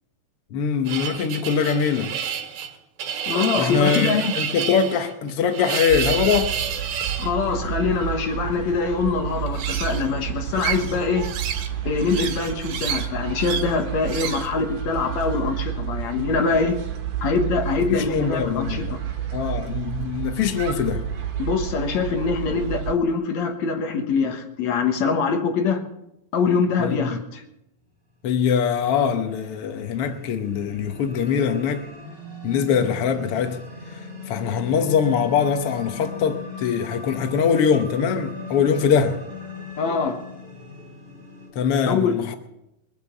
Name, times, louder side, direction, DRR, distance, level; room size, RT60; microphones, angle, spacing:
voice 1, 0.5-2.1 3.6-6.6 17.9-18.8 19.3-21.1 26.8-27.2 28.2-31.8 32.4-33.6 33.9-34.0 34.3-39.2 41.5-42.3, left 7 dB, 75° left, 1.3 m, -22 dB
sound 1, 0.9-7.3 9.5-10.1 10.5-11.7 12.0-13.1 13.4-13.7 14.1-14.5, right 8 dB, 80° right, 3.2 m, -29 dB
voice 2, 3.3-4.3 7.2-11.3 11.8-16.8 17.2-19.0 21.4-25.8 26.3-27.4 39.8-40.3 41.9-42.2, left 5 dB, 60° left, 2.3 m, -24 dB
sound 2, 5.9-23.0, right 10 dB, 60° right, 2.6 m, -30 dB
sound 3, 28.4-41.5, left 3 dB, 20° right, 6.2 m, -39 dB
22.0 x 8.2 x 7.3 m
omnidirectional pair, 4.0 m